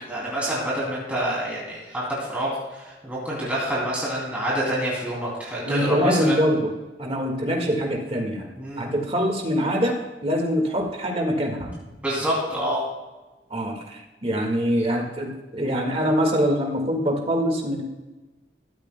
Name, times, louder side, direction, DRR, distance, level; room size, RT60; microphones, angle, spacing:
voice 1, 0.1-6.3 8.6-8.8 12.0-12.8, right 1 dB, 10° right, -7 dB, 2.7 m, -27 dB
voice 2, 5.6-6.7 7.0-8.5 8.8-11.7 13.5-17.8, equal, 35° right, 1 dB, 1.7 m, -24 dB
14.5 x 13.0 x 2.2 m, 1.1 s
head